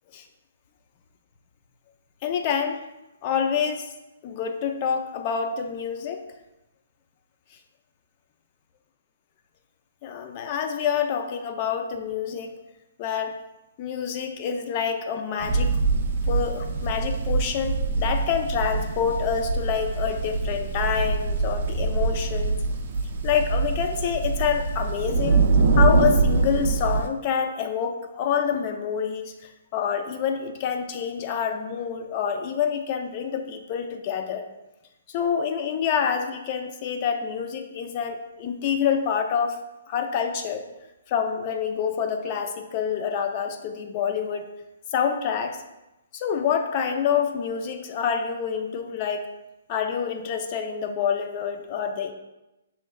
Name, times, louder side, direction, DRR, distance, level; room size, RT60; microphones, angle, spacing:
voice 1, 2.2-2.8 3.2-3.9 4.2-6.2 7.5-7.6 10.0-12.6 13.0-13.4 13.8-15.7 16.2-22.6 23.2-25.4 25.7-34.5 35.1-39.6 39.9-40.7 41.1-44.5 44.9-45.6 46.1-49.3 49.7-52.1, left 7 dB, 35° left, 5 dB, 0.5 m, -27 dB
sound 1, 15.4-27.1, right 3 dB, 50° right, 0.5 m, -24 dB
6.2 x 3.2 x 2.3 m, 0.98 s
hypercardioid pair, 150°, 0 cm